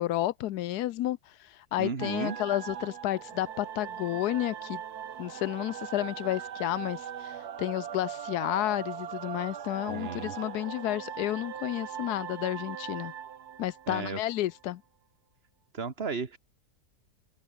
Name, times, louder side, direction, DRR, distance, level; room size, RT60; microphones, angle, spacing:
voice 1, 0.0-4.8 5.2-13.1 13.6-14.8, left 14 dB, 75° left, 1.2 m, -31 dB
voice 2, 1.8-2.4 9.9-10.4 13.9-14.2 15.7-16.4, right 5 dB, 40° right, 1.9 m, -34 dB
sound 1, 2.0-14.6, right 9 dB, 70° right, 1.7 m, -40 dB
open air
omnidirectional pair, 1.7 m